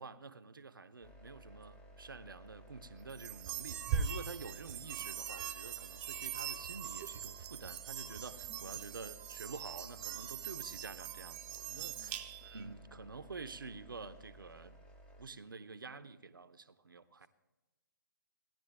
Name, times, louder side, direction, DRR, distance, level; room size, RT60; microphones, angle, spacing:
voice 1, 0.0-14.8 15.2-17.3, right 4 dB, 85° right, 0.7 m, -49 dB
sound 1, 1.0-15.3, right 1 dB, 10° left, 0.8 m, -57 dB
sound 2, 3.1-12.6, right 8 dB, 25° right, 0.7 m, -42 dB
voice 2, 11.7-12.2 17.2-17.3, left 5 dB, 55° left, 2.1 m, -59 dB
17.0 x 10.5 x 3.4 m
figure-of-eight pair, 130°, 11 cm